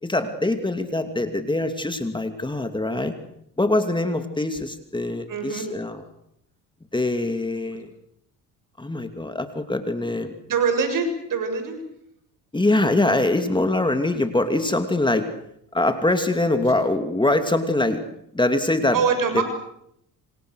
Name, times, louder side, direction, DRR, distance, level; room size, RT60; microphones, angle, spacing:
voice 1, 0.0-3.1 3.6-6.0 6.9-7.9 8.8-10.3 12.5-15.3 15.7-18.0 18.3-19.0 19.3-19.4, left 2 dB, 10° left, 7 dB, 2.7 m, -23 dB
voice 2, 5.3-5.7 10.5-11.8 18.9-19.4, right 5 dB, 60° right, 7 dB, 7.4 m, -23 dB
27.0 x 26.5 x 6.5 m, 0.75 s
supercardioid pair, 80°, 37 cm